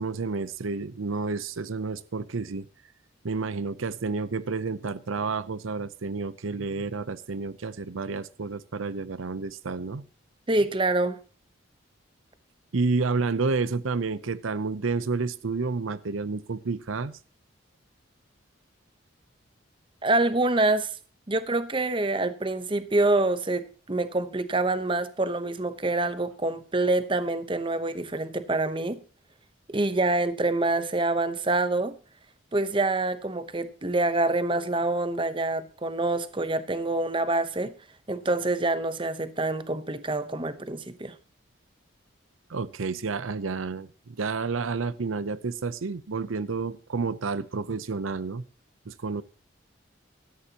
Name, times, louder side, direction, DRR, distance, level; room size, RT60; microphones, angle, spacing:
voice 1, 0.0-2.7 3.2-10.0 12.7-17.2 42.5-48.4 48.9-49.2, right 4 dB, 85° right, 0.7 m, -30 dB
voice 2, 10.5-11.2 20.0-20.9 21.3-29.0 29.7-31.9 32.5-37.7 38.1-41.2, right 2 dB, 25° right, 0.9 m, -26 dB
17.0 x 13.0 x 2.9 m
head